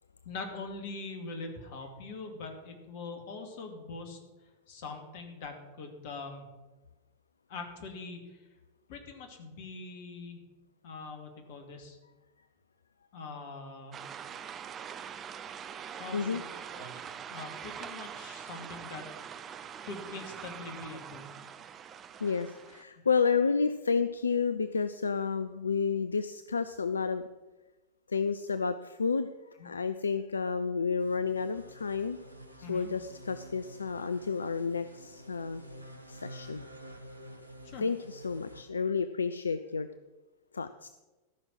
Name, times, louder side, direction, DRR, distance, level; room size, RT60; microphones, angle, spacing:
voice 1, 0.2-4.2 4.7-6.5 7.5-8.4 8.9-10.4 10.8-12.0 13.1-14.0 16.0-16.4 16.7-17.0 17.3-19.1 19.8-21.3 29.6-29.7 32.6-32.9 37.6-37.8, left 3 dB, 50° left, 4 dB, 2.5 m, -43 dB
sound 1, 13.9-22.8, right 8 dB, 25° right, 0.6 m, -43 dB
voice 2, 22.2-27.2 28.1-29.3 29.6-32.2 32.7-35.6 36.1-36.6 37.8-39.9 40.5-40.9, left 5 dB, 75° left, 12 dB, 0.4 m, -30 dB
sound 2, 31.0-38.6, right 1 dB, 85° right, 1.1 m, -49 dB
14.0 x 6.2 x 7.6 m, 1.2 s
figure-of-eight pair, 90°, 0 cm